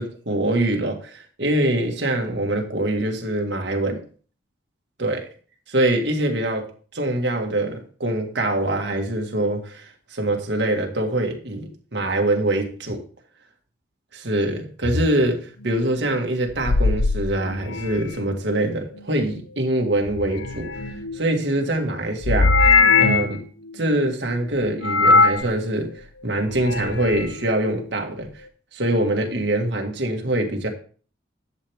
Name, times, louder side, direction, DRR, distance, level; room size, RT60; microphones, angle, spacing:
voice 1, 0.0-4.0 5.0-5.3 5.7-13.0 14.1-20.7 21.1-22.6 23.0-23.4 23.7-28.3 28.7-30.7, right 1 dB, 65° right, 1.8 m, -24 dB
sound 1, 14.8-15.1 16.5-18.2 20.1-21.2 22.2-23.4 24.8-25.5 26.4-27.3, left 3 dB, 85° left, 0.8 m, -20 dB
11.5 x 7.6 x 3.6 m
head